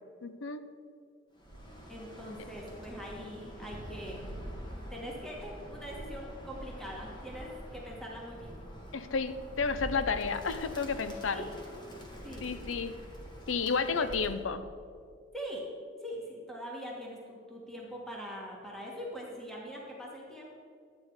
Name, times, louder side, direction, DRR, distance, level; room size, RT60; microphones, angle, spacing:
voice 1, 0.2-0.6 8.9-11.4 12.4-13.0 13.5-14.7, left 5 dB, 85° left, 11 dB, 0.6 m, -31 dB
Bird, 1.4-14.5, equal, 25° left, 1.7 m, -45 dB
voice 2, 1.9-4.3 4.9-8.6 11.2-11.5 12.2-12.5 14.0-14.1 15.3-15.6 16.0-20.5, equal, ahead, -4 dB, 1.7 m, -42 dB
12.0 x 8.6 x 4.8 m, 2.2 s
head